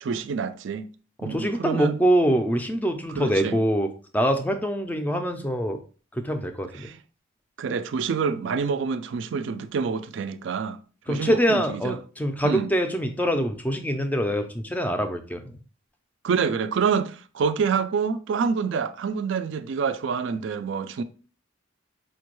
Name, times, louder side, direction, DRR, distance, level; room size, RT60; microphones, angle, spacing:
voice 1, 0.0-0.9 1.2-2.0 3.2-3.6 6.8-6.9 7.6-10.8 11.1-12.0 12.4-12.7 16.2-21.0, right 6 dB, 65° right, 0.3 m, -27 dB
voice 2, 1.2-5.8 6.1-6.9 11.1-15.4, equal, 10° left, 0.4 m, -24 dB
5.0 x 2.2 x 3.0 m
head